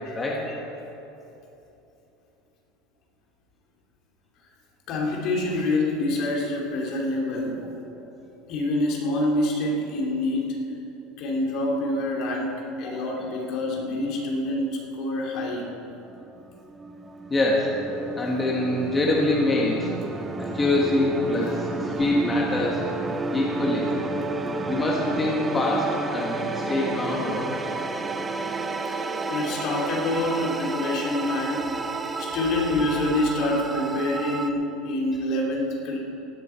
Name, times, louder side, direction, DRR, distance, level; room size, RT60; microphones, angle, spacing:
voice 1, 0.1-0.5 12.8-13.1 16.1-16.2 17.3-17.8 18.1-19.9 20.4-22.8 23.3-23.9 24.7-27.8, left 2 dB, 15° left, -3 dB, 1.6 m, -25 dB
voice 2, 4.9-7.6 8.5-10.5 11.2-15.7 29.3-31.7 32.2-36.0, left 1 dB, 50° left, -1 dB, 2.8 m, -26 dB
sound 1, 16.2-34.5, right 3 dB, 15° right, 0.7 m, -31 dB
17.5 x 11.0 x 4.5 m, 3.0 s
supercardioid pair, 140°, 0 cm